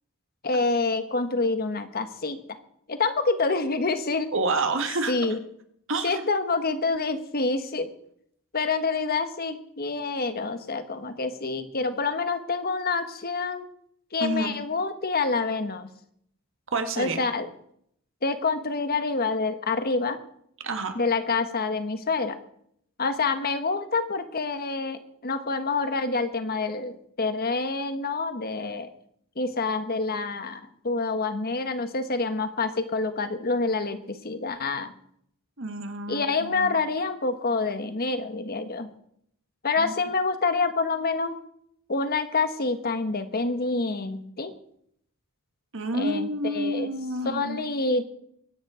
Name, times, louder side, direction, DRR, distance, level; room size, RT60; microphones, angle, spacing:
voice 1, 0.4-2.6 2.9-4.3 5.1-5.4 6.0-7.9 8.5-13.7 14.1-15.9 17.0-17.5 18.2-20.2 20.9-22.4 23.0-28.9 29.4-34.9 36.1-38.9 39.6-41.4 41.9-44.5 45.9-46.9 47.2-48.0, left 3 dB, 45° left, 9 dB, 1.3 m, -27 dB
voice 2, 4.3-5.1 5.9-6.3 14.2-14.6 16.7-17.2 20.6-20.9 35.6-36.8 39.8-39.9 45.7-47.6, right 2 dB, 60° right, 6 dB, 1.8 m, -29 dB
23.0 x 9.8 x 5.0 m, 0.70 s
head